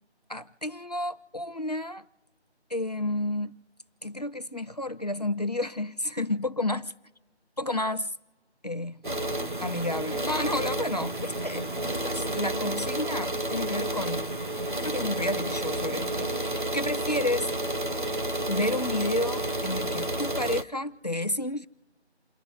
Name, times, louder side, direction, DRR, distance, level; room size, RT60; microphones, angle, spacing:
voice 1, 0.3-2.0 2.7-3.6 4.0-6.9 7.6-8.1 8.6-9.0 9.6-11.7 12.0-14.3 14.8-17.5 18.5-21.7, left 1 dB, 35° left, 0.6 m, -31 dB
sound 1, 9.0-20.6, right 1 dB, 45° right, 0.7 m, -31 dB
29.5 x 10.5 x 4.1 m
figure-of-eight pair, 175°, 34 cm